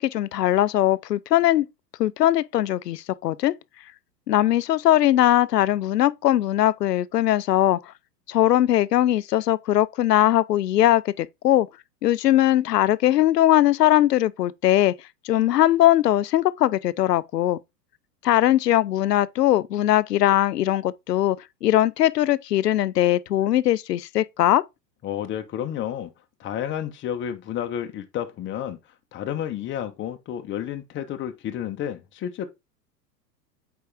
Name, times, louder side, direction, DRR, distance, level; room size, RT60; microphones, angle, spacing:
voice 1, 0.0-1.7 2.0-3.5 4.3-7.8 8.3-11.7 12.0-14.9 15.2-17.6 18.2-24.6, left 13 dB, 70° left, 0.6 m, -20 dB
voice 2, 25.0-26.1 26.4-28.8 29.1-32.5, left 10 dB, 25° left, 1.1 m, -31 dB
8.1 x 4.7 x 3.5 m
figure-of-eight pair, 95°, 50 cm